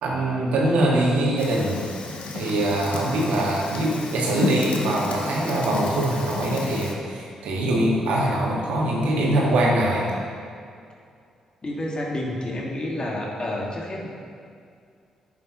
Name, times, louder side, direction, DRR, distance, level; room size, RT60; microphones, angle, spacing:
voice 1, 0.0-1.8 2.3-10.1, right 1 dB, 75° right, -3 dB, 1.9 m, -23 dB
Fire, 1.4-6.9, left 3 dB, 60° left, 1.2 m, -32 dB
voice 2, 11.6-14.1, left 1 dB, 40° left, -2 dB, 2.2 m, -29 dB
11.0 x 8.3 x 3.1 m, 2.3 s
hypercardioid pair, 45°, 2 cm